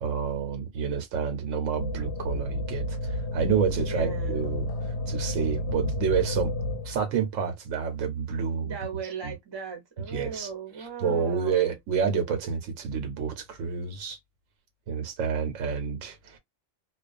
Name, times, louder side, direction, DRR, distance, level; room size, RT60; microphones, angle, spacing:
voice 1, 0.0-4.7 5.1-6.5 6.8-8.7 9.2-9.3 10.1-10.5 10.8-14.2 14.9-16.4, right 6 dB, 90° right, 1.1 m, -29 dB
sound 1, 1.8-7.2, left 1 dB, 70° left, 0.8 m, -31 dB
voice 2, 3.8-4.5 8.6-11.8, right 6 dB, 25° right, 0.7 m, -37 dB
2.3 x 2.3 x 2.4 m
omnidirectional pair, 1.3 m